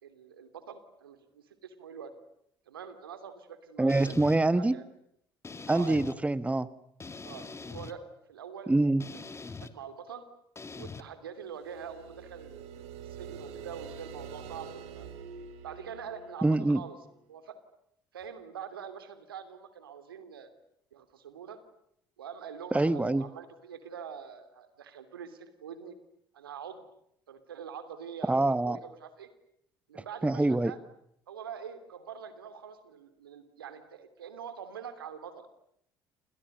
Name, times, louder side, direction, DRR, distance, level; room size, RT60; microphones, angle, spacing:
voice 1, 0.0-2.1 2.7-4.8 5.7-6.1 7.2-8.0 8.3-8.7 9.6-10.2 10.8-15.1 15.6-17.0 17.3-17.6 18.1-20.5 20.9-21.6 22.2-26.0 26.3-26.8 27.3-28.3 28.6-29.3 29.9-30.8 31.3-35.5, right 7 dB, 85° right, 10 dB, 2.9 m, -44 dB
voice 2, 3.8-4.8 5.7-6.7 8.7-9.0 16.4-16.8 22.7-23.2 28.2-28.8 29.9-30.7, right 2 dB, 10° right, 16 dB, 1.4 m, -25 dB
sound 1, 3.9-4.4 5.4-6.2 7.0-7.9 9.0-9.7 10.6-11.0, left 4 dB, 25° left, 2.6 m, -42 dB
sound 2, 11.6-17.0, right 6 dB, 65° right, 3.7 m, -46 dB
29.0 x 28.5 x 6.7 m, 0.73 s
figure-of-eight pair, 55°, 12 cm